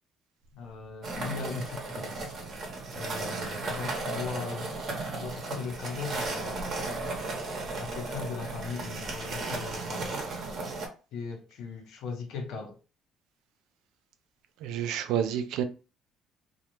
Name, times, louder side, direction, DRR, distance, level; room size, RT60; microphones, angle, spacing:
voice 1, 0.5-2.3 2.9-4.7 5.0-6.9 7.8-10.2 11.1-12.8, left 5 dB, 75° left, 0.7 m, -38 dB
sound 1, 1.0-10.9, right 3 dB, 55° right, 0.8 m, -35 dB
voice 2, 14.6-15.6, right 9 dB, 80° right, 0.3 m, -29 dB
2.3 x 2.1 x 2.9 m
cardioid pair, 95°, 0 cm